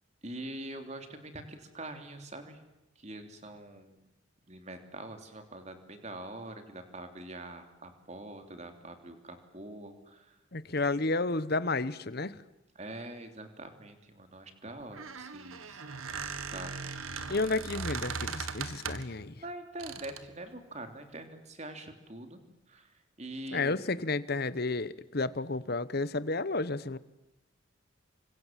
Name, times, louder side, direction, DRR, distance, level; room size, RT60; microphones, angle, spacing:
voice 1, 0.2-2.6 2.9-3.9 4.5-10.4 12.7-15.8 16.3-17.1 19.4-22.4 22.7-23.8, right 1 dB, 35° right, 6 dB, 3.2 m, -44 dB
voice 2, 10.5-12.4 17.3-19.4 23.5-27.0, left 3 dB, 50° left, 16 dB, 1.1 m, -31 dB
Squeak, 14.8-19.2 19.8-20.3, right 5 dB, 85° right, 1.9 m, -39 dB
29.0 x 25.0 x 7.5 m, 0.96 s
head